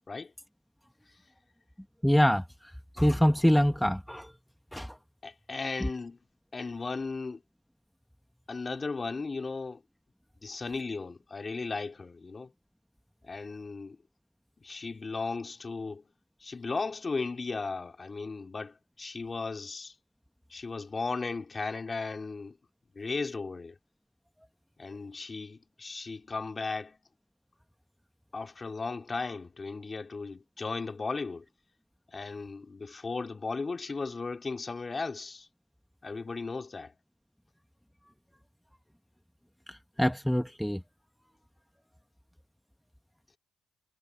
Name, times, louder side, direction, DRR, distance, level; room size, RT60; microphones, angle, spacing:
voice 1, 2.0-2.4 2.9-4.3 4.7-4.9 39.7-40.8, equal, ahead, 0.8 m, -25 dB
voice 2, 5.2-6.2 6.5-7.4 8.5-9.8 10.4-12.5 13.2-14.0 14.6-16.0 16.4-19.9 20.5-22.6 22.9-23.8 24.8-27.0 28.3-31.4 32.1-35.5 36.0-36.9, left 4 dB, 30° left, 3.3 m, -36 dB
cardioid pair, 90°, 0 cm